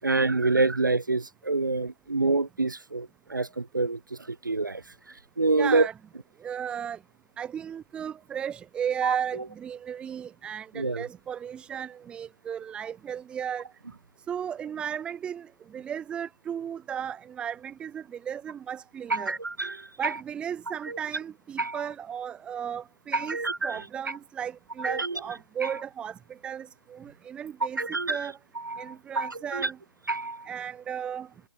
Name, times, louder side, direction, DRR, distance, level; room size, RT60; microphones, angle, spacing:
voice 1, 0.0-4.8 5.4-5.9 9.0-9.4 10.7-11.0 19.1-20.2 20.8-21.0 21.6-21.9 23.1-23.8 24.1-24.2 24.8-25.2 25.6-25.7 27.8-29.7 30.1-30.5, right 3 dB, 80° right, 7.9 m, -27 dB
voice 2, 5.6-5.9 6.4-7.0 7.4-13.6 14.3-19.4 20.0-23.4 23.6-28.4 28.8-29.8 30.5-31.3, right 8 dB, 10° right, 5.2 m, -35 dB
figure-of-eight pair, 150°, 10 cm